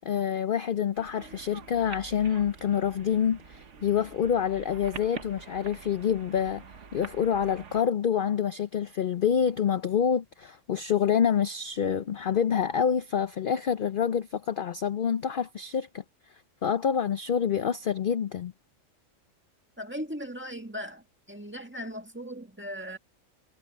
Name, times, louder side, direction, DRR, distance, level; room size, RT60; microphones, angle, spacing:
voice 1, 0.0-6.6 6.9-16.0 16.6-18.5, left 8 dB, 50° left, 0.7 m, -27 dB
sound 1, 0.9-7.8, right 6 dB, 65° right, 1.5 m, -46 dB
voice 2, 19.8-23.0, equal, 10° right, 1.5 m, -38 dB
omnidirectional pair, 1.4 m